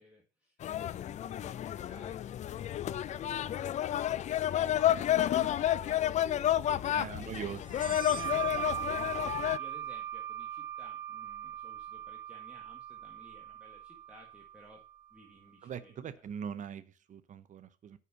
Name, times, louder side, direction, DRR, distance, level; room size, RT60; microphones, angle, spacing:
voice 1, 0.0-2.5 2.8-14.8 15.1-16.2, equal, 5° right, -1 dB, 1.8 m, -58 dB
sound 1, 0.6-9.6, left 12 dB, 45° left, 0.4 m, -31 dB
voice 2, 6.9-8.0 15.6-18.0, right 8 dB, 45° right, 14 dB, 0.7 m, -42 dB
sound 2, 7.7-15.0, right 10 dB, 30° right, 1.5 m, -40 dB
6.1 x 5.6 x 6.9 m, 0.37 s
cardioid pair, 110°, 17 cm